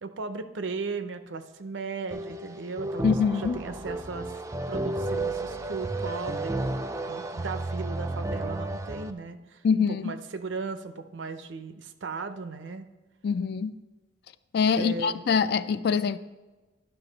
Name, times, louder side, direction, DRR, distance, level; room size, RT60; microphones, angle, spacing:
voice 1, 0.0-3.0 3.4-4.4 4.7-6.6 7.1-9.6 10.0-12.9 14.7-15.2, right 4 dB, 85° right, 0.6 m, -36 dB
sound 1, 2.1-9.1, right 2 dB, 15° right, 0.4 m, -32 dB
voice 2, 3.0-3.6 9.6-10.1 13.2-13.8 14.5-16.2, left 6 dB, 60° left, 0.3 m, -24 dB
11.0 x 5.7 x 4.0 m
head